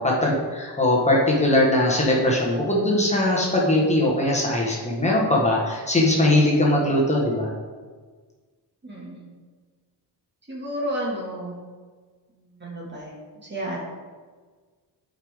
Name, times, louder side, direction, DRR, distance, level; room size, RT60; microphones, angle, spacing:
voice 1, 0.0-7.5, left 1 dB, 15° left, -4 dB, 1.4 m, -20 dB
voice 2, 8.8-9.3 10.5-11.6 12.6-13.1 13.4-13.8, equal, 25° right, -4 dB, 2.0 m, -31 dB
11.5 x 5.2 x 3.7 m, 1.4 s
wide cardioid pair, 170°, 42 cm